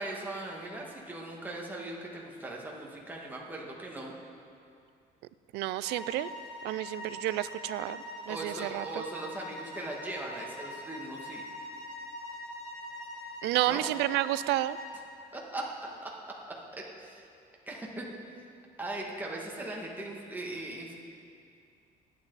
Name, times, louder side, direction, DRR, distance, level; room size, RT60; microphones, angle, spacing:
voice 1, 0.0-4.1 8.3-11.4 13.7-13.9 15.3-17.3 17.7-18.1 18.3-18.4 18.8-20.9, right 2 dB, 10° right, -2 dB, 1.9 m, -39 dB
voice 2, 5.5-6.3 6.6-8.8 13.4-14.8, right 16 dB, 85° right, 16 dB, 0.4 m, -30 dB
sound 1, 5.8-15.0, left 1 dB, 5° left, 3.5 m, -43 dB
20.0 x 9.4 x 4.1 m, 2.5 s
cardioid pair, 110°, 17 cm